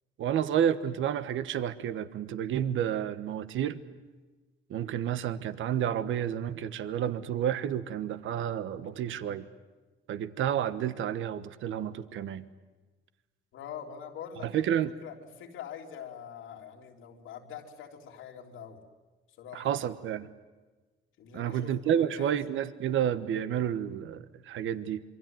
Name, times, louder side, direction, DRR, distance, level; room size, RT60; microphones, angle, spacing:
voice 1, 0.2-3.8 4.7-9.5 10.1-12.5 14.4-14.9 19.5-20.3 21.3-25.0, right 9 dB, 80° right, 13 dB, 1.3 m, -30 dB
voice 2, 13.5-14.6 15.0-18.8 19.4-19.8 21.2-22.4, left 8 dB, 90° left, 1 dB, 3.5 m, -44 dB
27.0 x 24.0 x 9.3 m, 1.3 s
cardioid pair, 90°, 20 cm